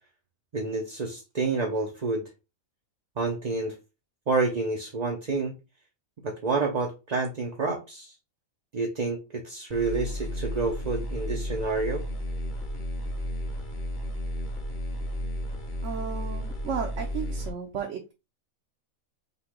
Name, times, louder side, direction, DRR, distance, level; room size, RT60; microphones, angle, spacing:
voice 1, 0.5-2.3 3.2-3.7 4.3-5.5 6.2-8.1 8.7-12.0, right 3 dB, 40° right, 0.6 m, -29 dB
sound 1, 9.7-17.5, equal, 40° left, 0.9 m, -33 dB
voice 2, 15.8-18.1, right 7 dB, 65° right, 1.1 m, -34 dB
5.7 x 2.3 x 3.7 m
omnidirectional pair, 1.5 m